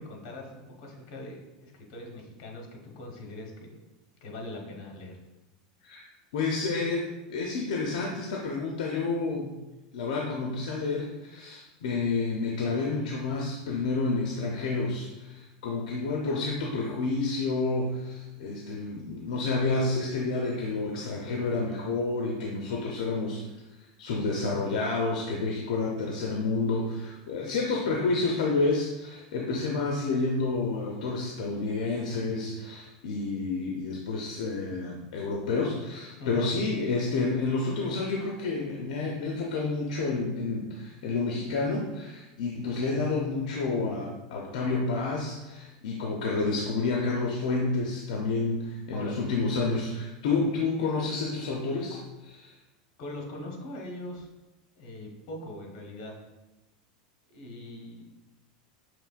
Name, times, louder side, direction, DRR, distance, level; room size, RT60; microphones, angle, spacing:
voice 1, 0.0-3.8 4.2-5.2 36.2-36.5 48.9-49.3 53.0-54.3 54.8-56.1 57.3-58.0, left 1 dB, 60° left, 0 dB, 1.1 m, -41 dB
voice 2, 6.3-9.5 9.9-23.4 23.8-52.5, left 3 dB, 75° left, 0 dB, 0.6 m, -29 dB
6.0 x 3.0 x 2.4 m, 1.0 s
supercardioid pair, 150°, 4 cm